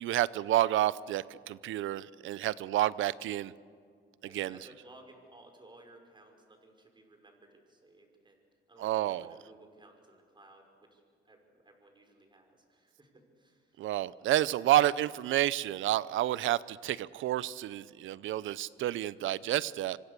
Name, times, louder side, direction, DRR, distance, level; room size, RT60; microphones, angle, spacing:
voice 1, 0.0-3.5 4.2-4.6 8.8-9.3 13.8-20.0, right 13 dB, 80° right, 19 dB, 0.7 m, -30 dB
voice 2, 4.2-8.4 8.7-13.8, right 2 dB, 25° right, 4 dB, 5.8 m, -58 dB
27.0 x 25.0 x 6.9 m, 2.2 s
cardioid pair, 90°, 20 cm